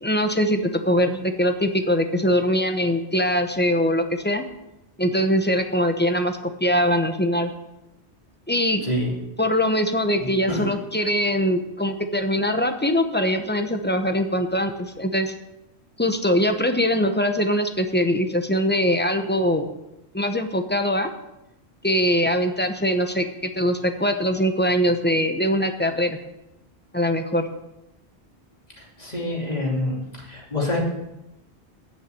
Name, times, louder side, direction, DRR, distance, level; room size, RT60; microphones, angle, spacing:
voice 1, 0.0-4.4 5.0-7.5 8.5-8.9 9.4-15.3 16.0-19.7 20.1-21.1 21.8-26.2 26.9-27.5, equal, 10° left, 6 dB, 0.9 m, -22 dB
voice 2, 8.8-9.1 10.2-10.7 28.8-30.8, left 1 dB, 35° left, -2 dB, 2.9 m, -27 dB
9.2 x 7.5 x 8.3 m, 0.92 s
omnidirectional pair, 1.1 m